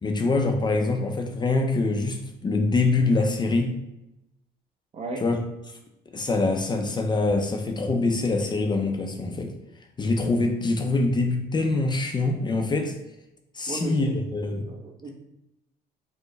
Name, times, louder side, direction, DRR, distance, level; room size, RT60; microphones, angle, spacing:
voice 1, 0.0-3.8 5.2-5.4 6.1-9.5 10.0-12.9 13.5-14.7, left 3 dB, 25° left, 3 dB, 0.5 m, -24 dB
voice 2, 13.7-14.2 14.7-15.1, right 2 dB, 35° right, 1 dB, 0.8 m, -34 dB
4.5 x 2.1 x 3.9 m, 0.90 s
cardioid pair, 110°, 17 cm